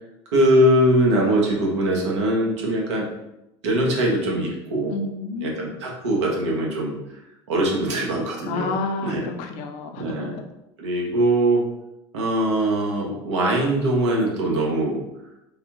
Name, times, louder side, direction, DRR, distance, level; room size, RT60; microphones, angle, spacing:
voice 1, 0.3-3.1 3.6-5.0 5.4-7.0 7.5-8.7 9.0-9.3 10.0-10.4 10.8-11.7 12.1-15.0, right 1 dB, 85° right, -1 dB, 1.0 m, -21 dB
voice 2, 4.9-5.7 8.4-10.2, left 4 dB, 55° left, 5 dB, 0.5 m, -30 dB
3.3 x 2.3 x 2.9 m, 0.89 s
supercardioid pair, 115°, 14 cm